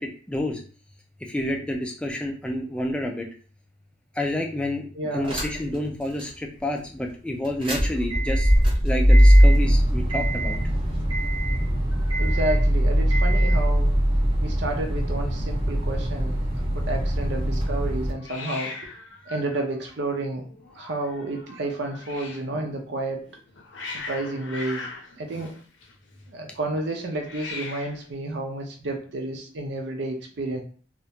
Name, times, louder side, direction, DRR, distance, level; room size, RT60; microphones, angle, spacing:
voice 1, 0.0-0.6 1.3-3.3 4.2-4.8 5.1-8.5 8.8-10.6, left 1 dB, 5° left, 1 dB, 0.3 m, -29 dB
voice 2, 4.9-5.4 12.2-14.0 14.4-16.4 16.7-18.7 19.3-20.4 20.7-23.3 23.8-24.9 25.2-25.6 26.3-30.6, right 2 dB, 60° right, 2 dB, 0.5 m, -31 dB
sound 1, 5.2-5.8 6.2-6.3 7.4-18.1, equal, 25° right, 0.7 m, -20 dB
Hiss, 11.9-13.3 13.5-14.0 14.2-14.3 14.5-15.2 18.2-22.5 23.3-26.2 27.1-28.1, left 3 dB, 65° left, 0.5 m, -40 dB
2.4 x 2.1 x 2.8 m, 0.42 s
head